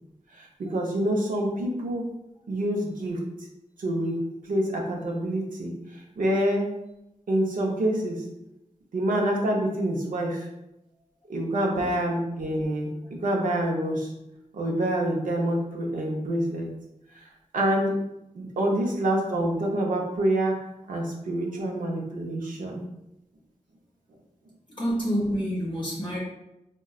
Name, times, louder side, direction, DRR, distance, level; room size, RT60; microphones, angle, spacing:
voice 1, 0.4-2.0 2.5-3.2 3.8-4.1 4.5-5.7 6.2-6.7 7.3-8.2 8.9-10.5 11.3-14.1 14.5-16.7 17.5-17.9 18.3-20.5 20.9-22.8, right 1 dB, 90° right, -1 dB, 0.6 m, -26 dB
voice 2, 24.8-26.2, equal, 35° left, -4 dB, 0.7 m, -28 dB
3.7 x 2.2 x 2.3 m, 0.87 s
wide cardioid pair, 65°, 14 cm